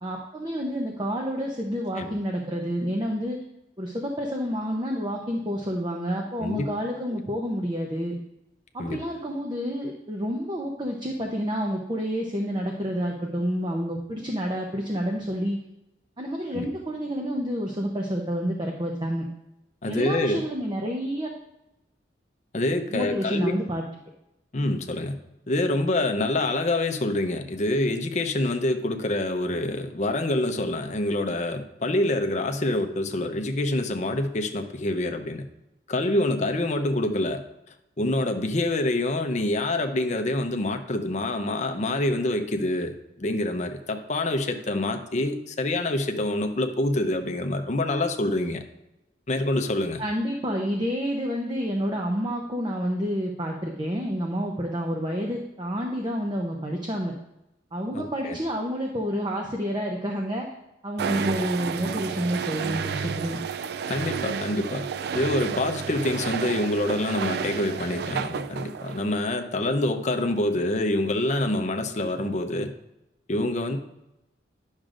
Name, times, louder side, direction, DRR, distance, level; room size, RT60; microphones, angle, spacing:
voice 1, 0.0-3.4 3.8-8.2 8.7-15.6 16.2-19.3 19.9-21.3 22.9-23.8 50.0-57.1 57.7-60.5 60.8-63.4, equal, 25° right, 1 dB, 0.7 m, -29 dB
voice 2, 6.4-6.7 8.8-9.0 16.5-16.7 19.8-20.4 22.5-23.5 24.5-25.1 25.5-35.4 35.9-37.4 38.0-48.6 49.3-50.0 57.9-58.4 63.9-64.9 65.1-72.7 73.3-73.8, left 1 dB, 40° left, 6 dB, 0.6 m, -26 dB
sound 1, 61.0-69.2, right 6 dB, 55° right, 0.3 m, -31 dB
10.5 x 6.3 x 2.5 m, 0.90 s
head